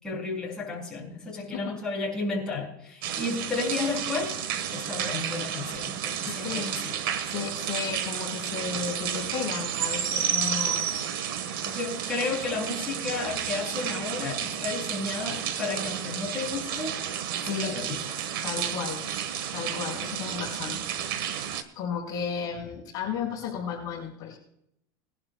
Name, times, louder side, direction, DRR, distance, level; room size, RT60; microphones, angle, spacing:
voice 1, 0.0-4.4 4.7-7.0 11.7-17.0 17.4-17.9, left 3 dB, 5° left, -4 dB, 5.8 m, -32 dB
sound 1, 3.0-21.6, right 9 dB, 75° right, 1.5 m, -31 dB
voice 2, 6.2-6.7 7.2-10.9 17.4-17.8 18.4-19.0 19.5-20.8 21.7-24.4, left 7 dB, 35° left, -4 dB, 4.2 m, -34 dB
21.5 x 11.5 x 2.3 m, 0.75 s
supercardioid pair, 150°, 12 cm